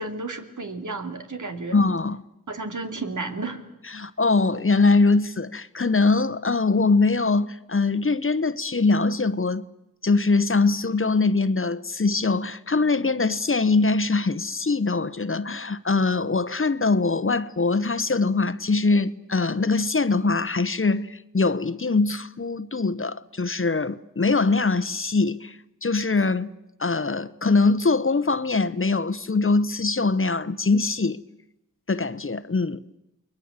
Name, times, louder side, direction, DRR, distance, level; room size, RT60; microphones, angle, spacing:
voice 1, 0.0-1.8 2.5-3.6, right 3 dB, 70° right, 2.9 m, -32 dB
voice 2, 1.7-2.2 3.9-9.6 10.0-26.5 26.8-31.2 31.9-32.8, left 3 dB, 40° left, 1.0 m, -22 dB
29.0 x 22.0 x 7.5 m
wide cardioid pair, 55°, 32 cm